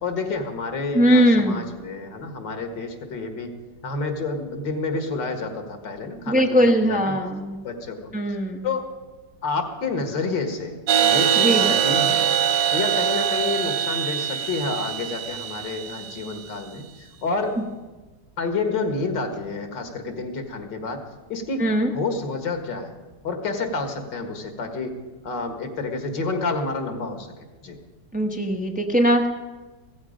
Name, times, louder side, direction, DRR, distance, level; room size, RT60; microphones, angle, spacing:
voice 1, 0.0-3.5 3.8-7.2 7.6-8.1 8.6-8.8 9.4-12.3 12.7-17.6 18.4-21.0 21.3-21.6 21.9-22.9 23.2-25.0 25.2-27.3 27.6-27.8, left 3 dB, 85° left, 6 dB, 2.3 m, -29 dB
voice 2, 0.9-1.7 6.3-7.6 8.1-8.7 11.4-11.8 21.6-21.9 28.1-29.3, equal, 5° right, 3 dB, 0.7 m, -20 dB
sound 1, 10.9-16.4, right 9 dB, 75° right, 1.6 m, -23 dB
16.0 x 14.5 x 5.2 m, 1.3 s
omnidirectional pair, 1.9 m